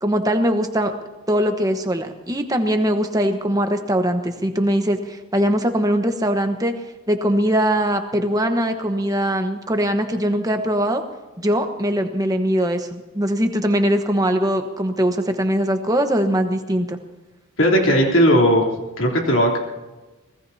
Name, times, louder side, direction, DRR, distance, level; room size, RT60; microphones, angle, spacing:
voice 1, 0.0-0.9 1.3-6.7 7.1-11.0 11.4-17.0, equal, 15° right, 5 dB, 1.2 m, -21 dB
voice 2, 17.6-18.6 19.0-19.6, equal, 65° left, 0 dB, 3.4 m, -16 dB
25.0 x 20.0 x 2.8 m, 1.1 s
head